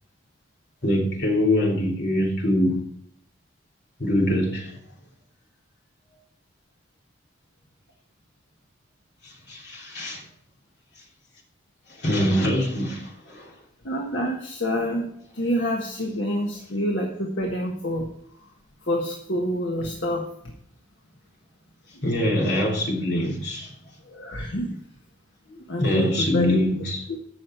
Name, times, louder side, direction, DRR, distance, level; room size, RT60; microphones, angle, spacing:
voice 1, 0.8-2.8 4.0-4.8 9.2-10.2 12.0-13.5 22.0-23.7 25.8-27.0, left 1 dB, 55° left, 3.2 m, -24 dB
voice 2, 13.8-18.1 18.9-20.3 24.1-24.7 25.7-26.6 27.1-27.2, equal, 70° left, 1.5 m, -27 dB
16.0 x 6.5 x 4.5 m
head